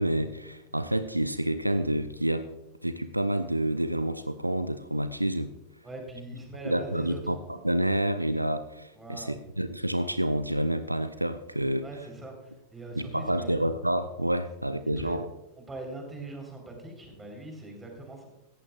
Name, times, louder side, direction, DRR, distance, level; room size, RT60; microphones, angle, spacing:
voice 1, 0.0-2.5 2.8-5.5 6.6-11.9 13.0-15.3, right 1 dB, 85° right, 12 dB, 0.5 m, -28 dB
voice 2, 5.8-7.3 8.9-9.4 11.8-13.6 14.8-15.2 15.6-18.3, right 2 dB, 10° right, 2 dB, 4.0 m, -41 dB
17.5 x 14.5 x 2.4 m, 0.93 s
figure-of-eight pair, 90°, 0 cm